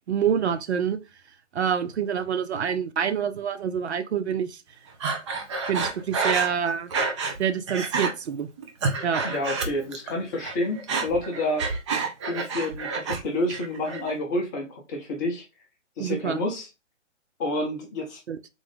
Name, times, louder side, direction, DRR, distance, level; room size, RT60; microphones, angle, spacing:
voice 1, 0.1-1.0 1.5-4.6 5.7-6.9 7.4-8.5 9.0-9.3 16.0-16.4 18.3-18.4, right 7 dB, 65° right, 0.6 m, -26 dB
Breathing, 5.0-7.4 7.7-8.1 8.6-10.1 10.4-13.2 13.5-14.1, right 4 dB, 25° right, 0.6 m, -28 dB
voice 2, 9.2-11.7 12.3-15.4 16.0-16.7 17.4-18.2, left 1 dB, 15° left, 0.5 m, -29 dB
3.8 x 2.5 x 3.3 m
figure-of-eight pair, 130°, 37 cm